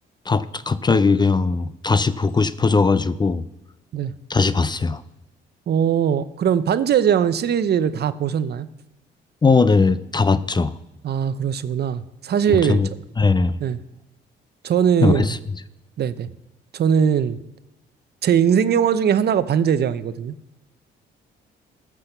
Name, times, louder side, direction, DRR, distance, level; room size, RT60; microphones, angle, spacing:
voice 1, 0.3-3.4 4.3-5.0 9.4-10.8 12.5-12.9 13.2-13.6 15.0-15.4, left 4 dB, 20° left, 15 dB, 0.5 m, -19 dB
voice 2, 5.7-8.7 11.0-12.8 13.6-13.8 14.6-15.3 16.0-16.3 16.7-17.4 18.2-20.4, right 8 dB, 55° right, 14 dB, 0.7 m, -20 dB
14.0 x 6.1 x 6.7 m, 0.99 s
cardioid pair, 90°, 20 cm